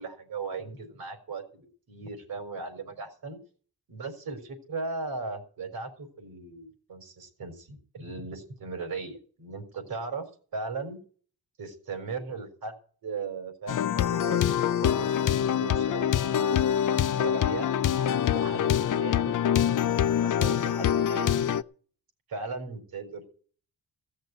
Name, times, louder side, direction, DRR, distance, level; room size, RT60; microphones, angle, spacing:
voice 1, 0.0-3.4 3.9-10.3 10.5-11.0 11.6-12.7 13.0-14.4 14.8-16.9 17.2-17.7 18.3-21.4 22.3-23.3, right 4 dB, 70° right, 6 dB, 4.3 m, -38 dB
sound 1, 13.7-21.6, left 9 dB, 55° left, 0.6 m, -25 dB
16.5 x 6.6 x 8.9 m, 0.44 s
wide cardioid pair, 145°, 37 cm